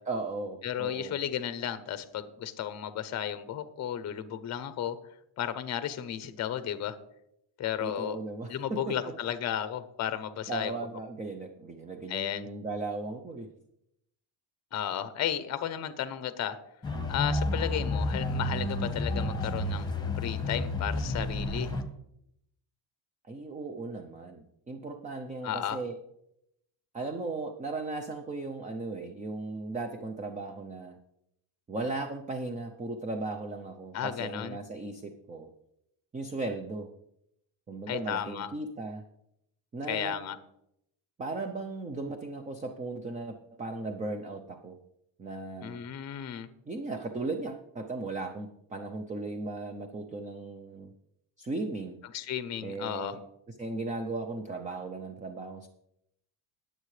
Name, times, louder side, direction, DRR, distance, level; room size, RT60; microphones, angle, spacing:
voice 1, 0.1-1.2 7.8-9.0 10.5-13.5 23.2-26.0 26.9-31.0 31.7-35.5 36.1-36.9 37.7-39.0 39.7-40.2 41.2-44.8 45.2-45.8 46.7-50.9 51.4-52.0 52.6-53.2 53.6-55.7, right 3 dB, 15° right, 5 dB, 0.5 m, -36 dB
voice 2, 0.6-5.0 5.4-7.0 7.6-8.2 8.5-10.8 12.1-12.5 14.7-16.6 17.1-21.7 25.4-25.8 33.9-34.6 37.9-38.5 39.9-40.4 45.6-46.5 52.1-53.2, left 10 dB, 35° left, 12 dB, 0.7 m, -34 dB
sound 1, 16.8-21.8, left 2 dB, 10° left, 1.0 m, -31 dB
20.0 x 7.6 x 3.2 m, 0.78 s
cardioid pair, 170°, 47 cm